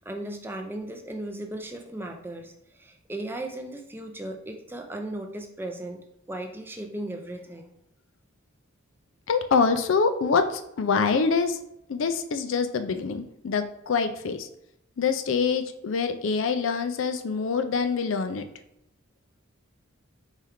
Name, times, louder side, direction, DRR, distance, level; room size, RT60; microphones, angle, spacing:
voice 1, 0.0-7.7, right 1 dB, 10° right, 3 dB, 0.4 m, -36 dB
voice 2, 9.3-11.6 11.9-14.5 15.0-18.4, left 5 dB, 65° left, 9 dB, 0.4 m, -25 dB
4.5 x 3.3 x 3.6 m, 0.82 s
head